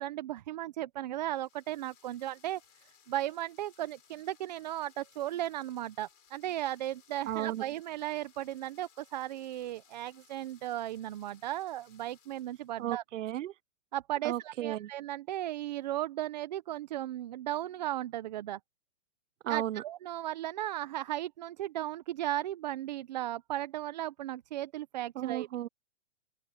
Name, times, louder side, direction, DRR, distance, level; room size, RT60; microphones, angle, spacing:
voice 1, 0.0-2.6 3.1-13.0 13.9-18.6 19.5-25.5, right 13 dB, 35° right, 0.7 m, -36 dB
sound 1, 1.1-12.9, left 8 dB, 90° left, 6.9 m, -64 dB
voice 2, 7.3-7.6 12.8-13.5 14.2-14.9 19.4-19.8 25.2-25.7, right 13 dB, 75° right, 0.6 m, -34 dB
open air
hypercardioid pair, 165°, 38 cm